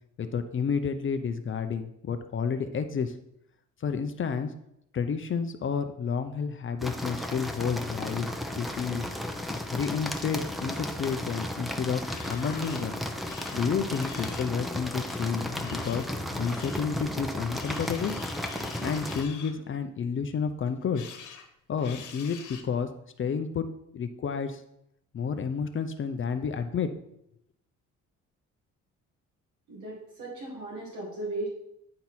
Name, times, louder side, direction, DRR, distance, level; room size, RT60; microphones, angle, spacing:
voice 1, 0.2-3.1 3.8-4.5 4.9-9.1 9.7-13.0 13.5-16.0 16.4-18.1 18.8-21.0 21.7-22.4 22.6-22.9 23.2-23.7 23.9-24.6 25.1-26.9, left 6 dB, 40° left, 8 dB, 0.6 m, -30 dB
sound 1, 6.8-19.2, left 1 dB, ahead, 0.8 m, -34 dB
sound 2, 12.0-12.9 13.3-14.6 15.1-16.9 17.5-19.5 20.6-21.5 21.8-22.6, left 7 dB, 80° left, 1.2 m, -46 dB
voice 2, 29.7-31.5, right 2 dB, 75° right, -5 dB, 2.3 m, -36 dB
9.6 x 3.9 x 4.4 m, 0.77 s
cardioid pair, 90°, 30 cm